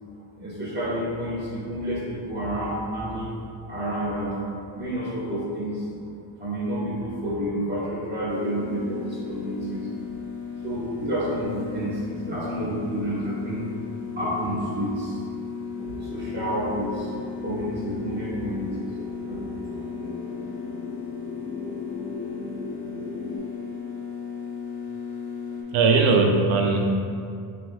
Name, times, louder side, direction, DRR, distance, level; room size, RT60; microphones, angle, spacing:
voice 1, 0.4-3.3 3.7-4.3 4.7-5.9 6.4-9.9 10.6-12.0 12.3-13.6 14.1-15.2 16.0-17.1 17.4-18.9 19.3-19.4, equal, 20° right, -8 dB, 1.2 m, -29 dB
sound 1, 8.3-25.6, left 6 dB, 75° left, 0.9 m, -36 dB
sound 2, 15.8-23.4, left 3 dB, 20° left, 0.9 m, -38 dB
voice 2, 25.7-26.9, right 4 dB, 85° right, 2 dB, 0.6 m, -19 dB
3.1 x 2.5 x 2.6 m, 2.4 s
cardioid pair, 100°, 47 cm